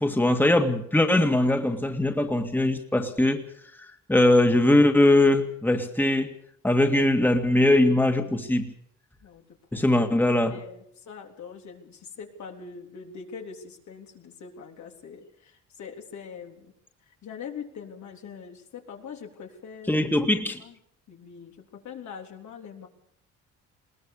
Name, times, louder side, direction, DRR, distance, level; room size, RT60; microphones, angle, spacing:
voice 1, 0.0-3.4 3.8-6.3 6.6-8.7 9.7-10.6 19.9-20.6, left 1 dB, 5° left, 5 dB, 2.2 m, -21 dB
voice 2, 9.7-10.1 10.5-16.7 17.1-20.1 20.5-20.8 21.1-22.9, left 6 dB, 70° left, 2 dB, 3.8 m, -43 dB
21.0 x 19.0 x 6.8 m, 0.71 s
cardioid pair, 90°, 30 cm